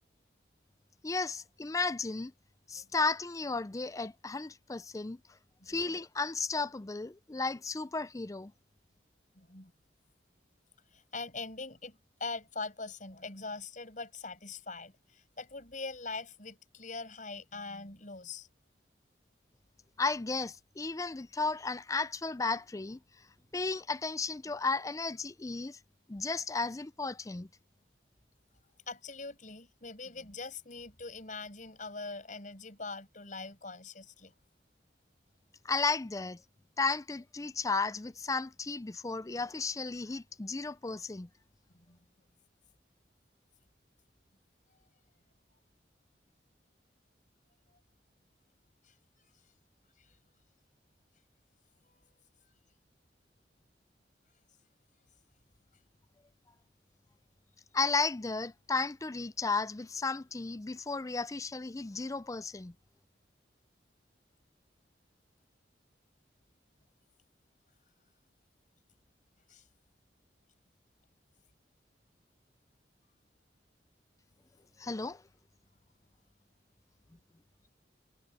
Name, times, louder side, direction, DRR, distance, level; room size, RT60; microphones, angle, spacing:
voice 1, 1.0-2.3 2.7-5.2 5.7-8.5 20.0-23.0 23.5-25.8 26.1-27.5 35.6-36.4 36.8-41.3 57.7-62.7 74.8-75.2, left 4 dB, 20° left, 0.4 m, -34 dB
voice 2, 5.6-6.0 9.3-9.7 10.9-18.5 28.9-34.3 41.7-42.0 48.8-48.9 50.0-50.1 51.9-52.0 69.5-69.6, left 3 dB, 45° left, 6.4 m, -43 dB
head